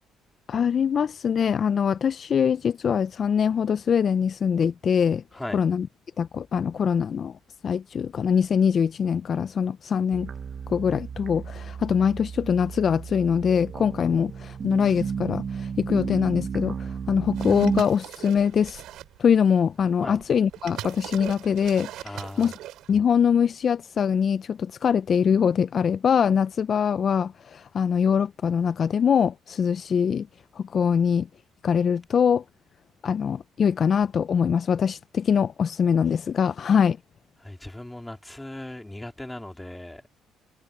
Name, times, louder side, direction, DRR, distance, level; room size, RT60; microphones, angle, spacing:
voice 1, 0.5-5.2 5.5-5.9 6.2-7.4 7.6-10.3 10.7-18.8 19.2-22.5 22.9-30.3 30.6-31.3 31.6-32.4 33.0-37.0, left 7 dB, 40° left, 0.3 m, -23 dB
sound 1, 10.1-17.8, right 6 dB, 35° right, 0.6 m, -33 dB
sound 2, 17.4-19.3 20.0-23.0, right 13 dB, 75° right, 6.6 m, -40 dB
voice 2, 22.0-22.6 37.4-40.0, left 1 dB, 5° left, 2.9 m, -38 dB
cardioid pair, 125°, 0 cm